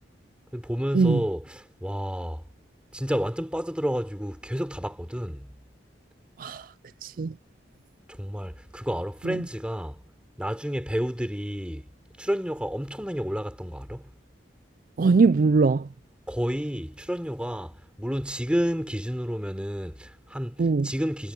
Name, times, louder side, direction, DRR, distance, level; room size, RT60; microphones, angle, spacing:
voice 1, 0.5-2.4 2.9-5.5 8.1-10.0 10.4-11.9 12.2-14.1 16.3-21.3, equal, 5° right, 4.6 m, -30 dB
voice 2, 7.0-7.3 9.2-9.4 15.0-15.9 20.6-20.9, right 4 dB, 45° right, 0.4 m, -21 dB
head